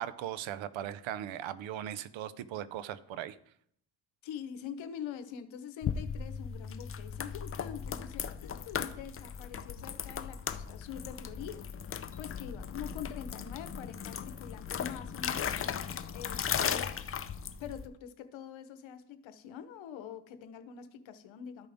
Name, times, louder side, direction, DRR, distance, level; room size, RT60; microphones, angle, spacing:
voice 1, 0.0-3.4, right 11 dB, 75° right, 16 dB, 0.6 m, -38 dB
voice 2, 4.2-11.6 12.2-15.7 16.1-16.9 17.6-21.7, left 8 dB, 75° left, 10 dB, 0.9 m, -44 dB
sound 1, 5.8-17.9, left 7 dB, 30° left, 0.5 m, -37 dB
13.0 x 5.0 x 3.5 m, 0.69 s
cardioid pair, 95°, 47 cm